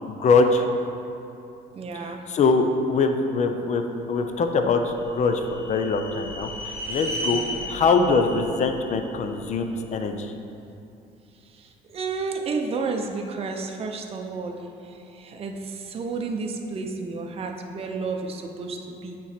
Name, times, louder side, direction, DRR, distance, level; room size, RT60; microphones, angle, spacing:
voice 1, 0.1-0.6 2.0-3.8 4.1-6.5 6.9-7.4 7.7-10.3, left 4 dB, 45° left, 6 dB, 0.5 m, -22 dB
voice 2, 1.7-2.2 7.5-7.8 11.5-19.2, right 4 dB, 35° right, 3 dB, 0.6 m, -32 dB
sound 1, 4.7-9.9, left 1 dB, 15° right, 1.2 m, -35 dB
8.8 x 3.1 x 4.3 m, 2.7 s
cardioid pair, 110°, 17 cm